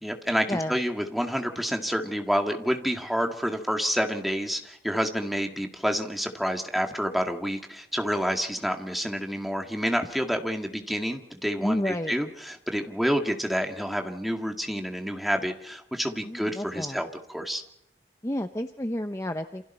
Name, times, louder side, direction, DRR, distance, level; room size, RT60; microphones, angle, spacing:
voice 1, 0.0-17.6, equal, ahead, 3 dB, 2.1 m, -28 dB
voice 2, 11.6-12.2 16.2-17.0 18.2-19.6, left 1 dB, 15° left, 7 dB, 0.9 m, -30 dB
28.5 x 27.5 x 4.4 m, 0.82 s
head